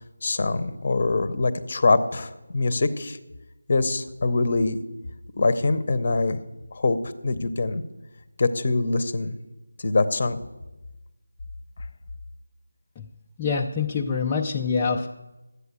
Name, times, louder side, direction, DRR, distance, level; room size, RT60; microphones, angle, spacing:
voice 1, 0.2-3.2 3.7-4.8 5.4-6.4 6.7-7.0 7.2-7.8 8.4-9.3 9.8-10.4, left 3 dB, 35° left, 14 dB, 0.7 m, -23 dB
voice 2, 13.4-15.1, left 5 dB, 10° left, -2 dB, 0.3 m, -25 dB
11.0 x 8.2 x 8.2 m, 1.0 s
figure-of-eight pair, 175°, 0 cm